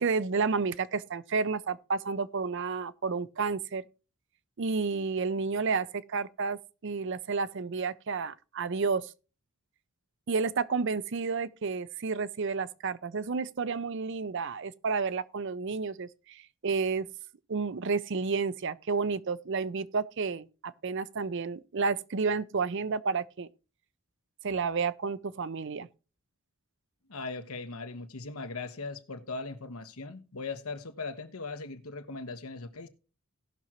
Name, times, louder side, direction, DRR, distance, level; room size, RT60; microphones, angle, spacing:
voice 1, 0.0-3.8 4.6-9.1 10.3-17.1 17.5-23.5 24.4-25.9, right 4 dB, 55° right, 0.5 m, -31 dB
voice 2, 27.1-32.9, left 3 dB, 75° left, 1.1 m, -39 dB
18.0 x 6.1 x 2.9 m
head